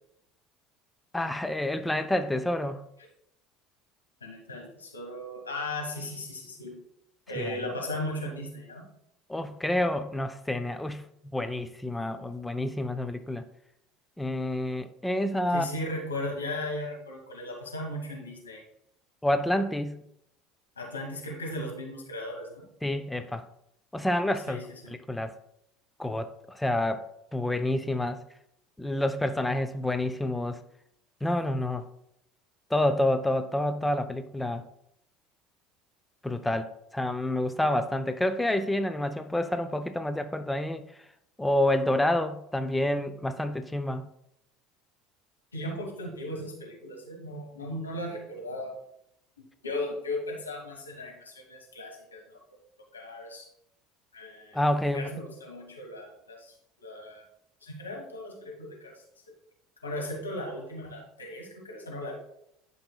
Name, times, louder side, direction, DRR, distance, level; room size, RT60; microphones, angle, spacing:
voice 1, 1.1-2.8 7.4-7.6 9.3-11.1 11.3-13.4 14.2-15.7 19.2-20.0 22.8-23.5 23.9-24.6 24.9-25.3 26.0-27.0 27.3-28.2 28.8-30.6 31.2-31.9 32.7-34.6 36.2-40.9 41.4-44.1 54.5-55.1, left 1 dB, 10° left, 0.5 m, -28 dB
voice 2, 4.2-6.7 7.3-8.8 15.5-18.6 20.8-22.7 24.5-24.9 45.5-48.7 49.6-52.4 52.9-53.5 54.1-54.6 54.9-57.2 57.6-59.3 59.8-62.1, left 1 dB, 85° left, 1.6 m, -37 dB
11.5 x 5.5 x 2.3 m
figure-of-eight pair, 65°, 0 cm